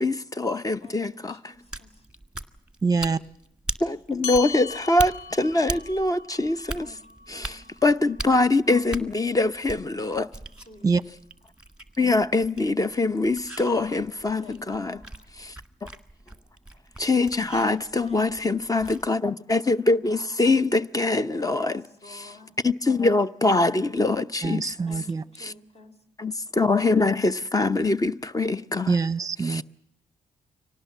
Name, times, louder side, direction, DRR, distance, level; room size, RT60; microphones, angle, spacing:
voice 1, 0.0-1.5 3.8-7.0 7.3-10.3 12.0-15.0 15.4-15.6 17.0-21.8 22.1-22.4 22.6-25.0 25.4-25.5 26.2-29.0 29.4-29.6, left 2 dB, 25° left, 0.8 m, -24 dB
voice 2, 1.3-1.9 6.8-7.0 7.3-7.7 10.1-10.2 10.7-10.9 14.4-15.5 18.0-19.0 21.4-22.6 24.9-26.0, left 2 dB, 45° left, 3.5 m, -48 dB
sound 1, 1.5-19.2, right 2 dB, 5° right, 1.8 m, -40 dB
voice 3, 2.8-3.2 10.8-11.0 24.4-25.2 28.9-29.6, right 4 dB, 25° right, 0.8 m, -24 dB
sound 2, 4.2-9.0, left 6 dB, 70° left, 1.6 m, -39 dB
24.5 x 18.5 x 7.3 m
hypercardioid pair, 45°, 15 cm